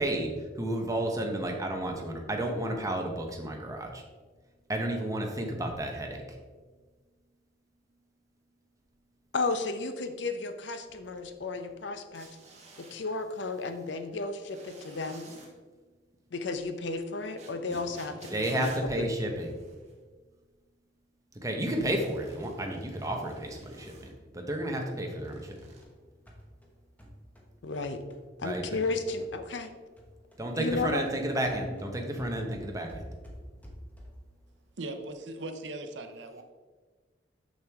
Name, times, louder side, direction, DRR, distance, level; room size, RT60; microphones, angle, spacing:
voice 1, 0.0-4.0 4.7-6.4 18.3-19.5 21.4-25.6 28.4-28.6 30.4-33.1, right 1 dB, 20° right, 2 dB, 0.9 m, -32 dB
voice 2, 9.3-12.3 12.8-15.3 16.3-18.7 19.0-19.1 27.6-28.0 28.4-29.7 30.5-31.0 31.7-31.8 32.3-32.5, left 3 dB, 70° left, 8 dB, 0.6 m, -33 dB
sound 1, 12.1-13.0 14.5-15.5 17.4-20.0 21.6-24.1 25.2-25.8, right 3 dB, 40° right, 1.4 m, -53 dB
sound 2, 25.4-29.7 30.0-34.3, equal, 10° left, 1.1 m, -49 dB
voice 3, 34.8-36.4, right 2 dB, 70° right, 7 dB, 0.7 m, -39 dB
6.4 x 6.3 x 3.5 m, 1.4 s
head